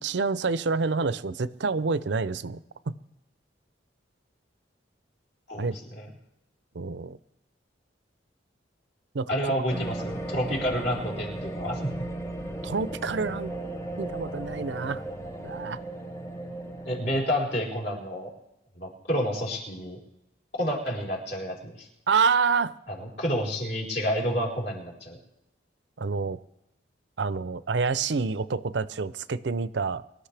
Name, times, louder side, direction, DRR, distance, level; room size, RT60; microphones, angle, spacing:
voice 1, 0.0-2.6 2.9-3.0 5.6-5.8 6.7-7.2 9.1-9.5 12.6-13.5 14.0-15.0 15.4-15.8 22.1-22.7 26.0-26.4 27.2-30.3, right 4 dB, 65° right, 15 dB, 0.5 m, -27 dB
voice 2, 5.5-6.1 9.3-12.1 16.8-18.3 18.8-20.0 20.6-21.9 22.9-25.2, equal, 60° left, -3 dB, 4.4 m, -29 dB
sound 1, 9.7-17.3, right 1 dB, 15° left, 0.9 m, -36 dB
24.0 x 12.5 x 3.4 m, 0.91 s
head